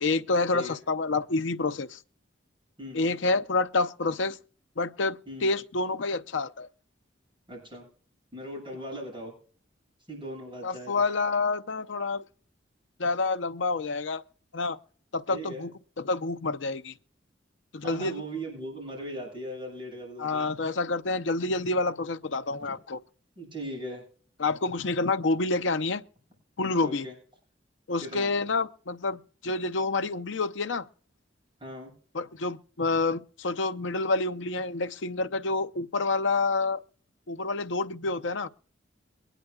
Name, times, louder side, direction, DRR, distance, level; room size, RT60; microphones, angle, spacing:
voice 1, 0.0-2.0 2.9-4.4 4.8-6.7 10.6-12.2 13.0-14.2 14.5-14.8 15.1-15.7 16.0-16.9 17.7-18.2 20.2-23.0 24.4-26.0 26.6-27.1 27.9-30.9 32.1-36.8 37.3-38.5, left 3 dB, 80° left, 0.7 m, -28 dB
voice 2, 2.8-3.1 5.3-5.5 7.5-7.9 8.3-9.3 10.1-11.0 15.3-15.7 17.8-20.4 23.4-24.0 26.8-27.1 28.0-28.3 31.6-31.9, equal, 25° right, 6.9 m, -39 dB
23.0 x 10.0 x 2.3 m
head